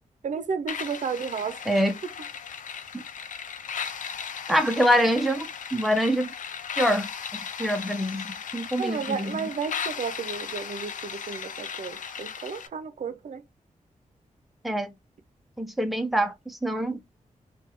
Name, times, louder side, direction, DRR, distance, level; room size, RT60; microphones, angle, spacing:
voice 1, 0.2-1.6 8.8-13.4, right 6 dB, 65° right, 0.5 m, -32 dB
sound 1, 0.7-12.7, left 7 dB, 75° left, 0.4 m, -36 dB
voice 2, 1.7-2.0 2.9-3.0 4.5-6.3 6.8-8.2 8.5-9.5 14.6-14.9 15.6-17.0, equal, ahead, 0.5 m, -25 dB
3.2 x 2.2 x 2.9 m
wide cardioid pair, 100°, 13 cm